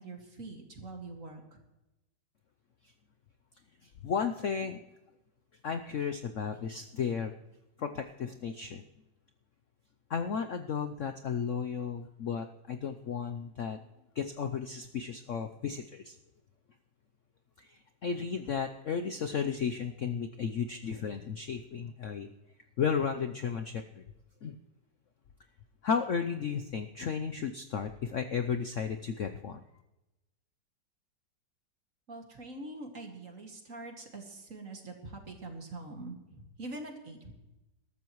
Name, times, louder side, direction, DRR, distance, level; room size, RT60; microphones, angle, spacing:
voice 1, 0.0-1.6 32.1-37.3, right 2 dB, 45° right, 3 dB, 2.5 m, -44 dB
voice 2, 3.8-4.8 5.6-7.3 7.8-8.8 10.1-13.8 14.1-16.1 17.6-22.3 22.8-24.0 24.4-24.6 25.8-29.6, left 6 dB, 60° left, 7 dB, 0.8 m, -34 dB
21.5 x 12.5 x 3.1 m, 0.97 s
omnidirectional pair, 2.0 m